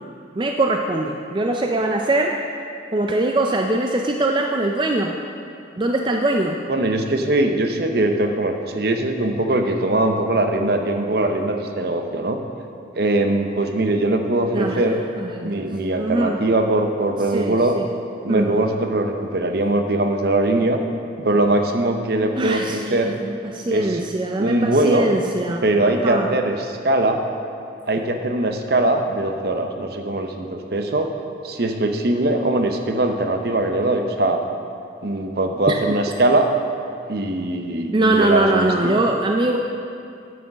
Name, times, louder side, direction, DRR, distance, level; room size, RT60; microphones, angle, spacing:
voice 1, 0.4-2.4 2.9-5.2 5.8-6.6 14.5-14.8 15.2-15.7 16.0-16.4 17.3-17.9 18.3-18.6 22.4-26.3 35.7-35.8 37.9-39.6, right 2 dB, 25° right, 2 dB, 0.4 m, -22 dB
voice 2, 6.7-12.4 13.0-15.0 15.4-17.8 18.2-20.8 21.2-23.1 23.7-24.0 24.4-25.1 25.6-27.2 27.9-31.1 31.4-34.4 35.0-36.5 37.1-39.0, right 2 dB, 55° right, 5 dB, 0.7 m, -21 dB
9.3 x 6.0 x 6.3 m, 2.5 s
head